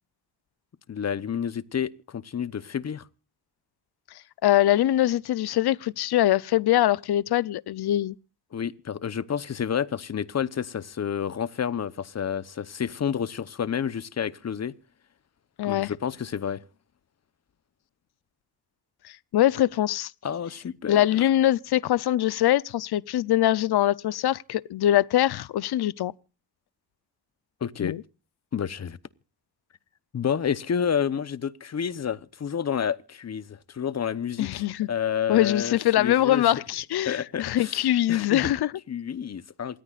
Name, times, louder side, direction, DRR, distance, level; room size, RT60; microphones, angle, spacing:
voice 1, 0.9-3.1 8.5-14.7 15.6-16.6 20.2-21.0 27.6-28.0 28.5-29.0 30.1-36.6 37.0-38.5 38.9-39.8, left 8 dB, 40° left, 0.9 m, -30 dB
voice 2, 4.4-8.1 15.6-15.9 19.3-20.1 20.9-26.1 27.8-28.0 34.4-34.9 35.3-38.7, left 13 dB, 65° left, 0.7 m, -23 dB
27.5 x 14.0 x 2.4 m
wide cardioid pair, 125°, 42 cm